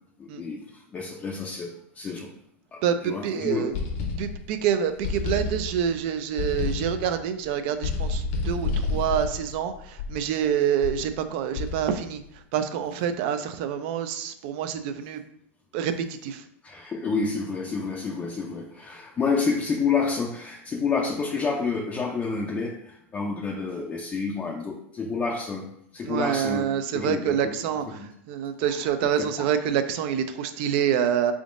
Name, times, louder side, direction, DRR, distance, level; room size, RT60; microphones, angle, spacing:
voice 1, 0.2-2.3 2.7-3.7 16.6-25.7 25.9-27.6 27.9-28.1 28.7-28.8 29.2-29.3, left 4 dB, 20° left, -1 dB, 0.5 m, -29 dB
voice 2, 2.8-3.7 4.2-15.2 15.7-16.4 26.0-31.3, right 8 dB, 55° right, 9 dB, 0.4 m, -27 dB
sound 1, 3.7-4.6 5.0-6.0 6.4-7.2 7.8-10.3 10.8-11.1 11.6-12.1, left 4 dB, 55° left, 0.8 m, -30 dB
3.7 x 3.6 x 2.5 m, 0.72 s
supercardioid pair, 130°, 7 cm